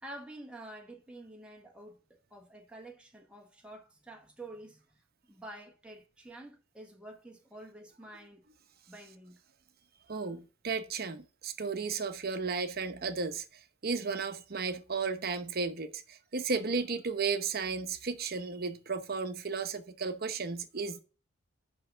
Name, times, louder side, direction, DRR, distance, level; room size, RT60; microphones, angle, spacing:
voice 1, 0.0-4.8 5.3-8.4 8.9-9.4, right 1 dB, 5° right, 1.3 m, -49 dB
voice 2, 10.1-13.4 13.8-21.0, right 4 dB, 50° right, 0.9 m, -34 dB
5.5 x 5.4 x 6.6 m
head